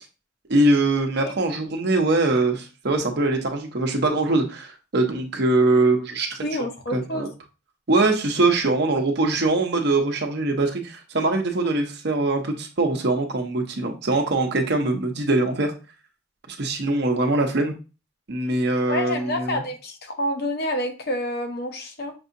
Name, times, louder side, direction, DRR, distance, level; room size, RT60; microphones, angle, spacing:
voice 1, 0.5-6.4 6.9-7.3 7.9-15.7 16.5-17.7 18.3-19.6, right 2 dB, 55° right, 0.8 m, -22 dB
voice 2, 6.4-7.3 18.9-22.1, left 1 dB, 55° left, 0.8 m, -28 dB
6.0 x 2.7 x 2.7 m
head